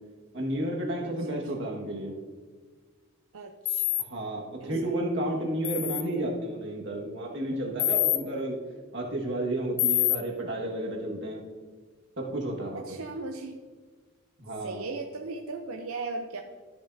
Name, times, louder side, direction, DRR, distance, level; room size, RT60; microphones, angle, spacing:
voice 1, 0.3-2.1 4.1-8.6 8.9-11.5 12.2-13.0 14.4-14.9, right 1 dB, 55° right, -1 dB, 1.7 m, -32 dB
voice 2, 3.3-4.0 4.6-4.7 12.7-13.6 14.6-16.4, right 3 dB, 85° right, 3 dB, 0.7 m, -37 dB
sound 1, 3.7-4.0 5.6-6.0 7.8-8.2 9.8-10.2, left 14 dB, 75° left, 0.7 m, -25 dB
13.5 x 7.3 x 2.7 m, 1.5 s
head